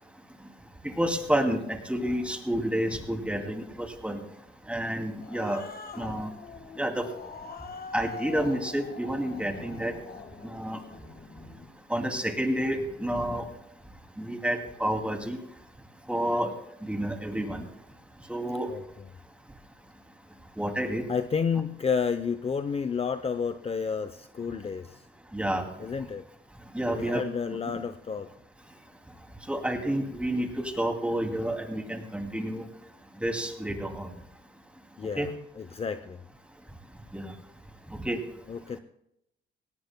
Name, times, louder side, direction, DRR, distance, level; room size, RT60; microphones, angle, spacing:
voice 1, 1.0-4.2 4.7-5.6 6.0-6.3 6.8-7.0 7.9-9.9 10.4-10.8 11.9-13.4 14.2-15.4 16.1-16.5 16.8-17.6 18.3-18.7 20.6-21.0 25.3-25.6 26.7-27.2 27.5-27.8 29.5-32.6 33.2-34.1 35.2-35.3 37.1-37.2 38.0-38.2, right 1 dB, 5° right, 4 dB, 2.5 m, -29 dB
Growling, 4.9-11.7, left 5 dB, 50° left, 1.6 m, -44 dB
voice 2, 21.1-25.0 25.8-26.2 26.9-28.3 35.0-35.3 35.6-36.2 38.5-38.8, left 6 dB, 30° left, 11 dB, 0.6 m, -30 dB
18.5 x 17.5 x 2.2 m, 0.79 s
cardioid pair, 90°, 20 cm